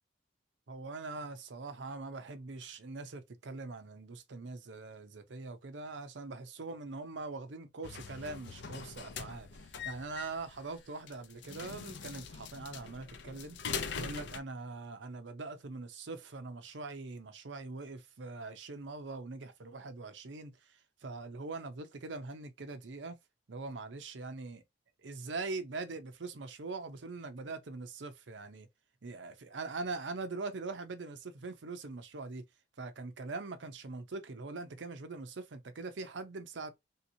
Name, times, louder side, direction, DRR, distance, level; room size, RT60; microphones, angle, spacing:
voice 1, 0.7-13.6 14.0-23.2 23.5-24.6 25.0-28.7 29.0-32.4 32.8-36.7, right 3 dB, 90° right, 0.7 m, -42 dB
sound 1, 7.8-14.4, left 6 dB, 70° left, 0.5 m, -42 dB
3.5 x 2.8 x 2.7 m
head